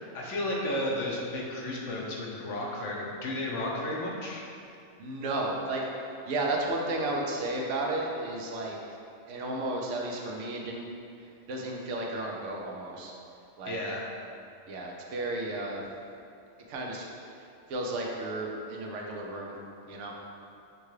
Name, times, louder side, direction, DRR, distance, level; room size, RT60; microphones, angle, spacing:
voice 1, 0.1-4.4 13.7-14.0, left 1 dB, 85° left, -3 dB, 1.1 m, -33 dB
voice 2, 5.0-8.8 9.3-10.9 11.2-13.1 13.6-13.8 14.7-15.8 16.7-17.4 17.7-19.5 19.9-20.1, right 2 dB, 90° right, -1 dB, 1.0 m, -33 dB
6.4 x 2.3 x 3.2 m, 2.5 s
omnidirectional pair, 1.2 m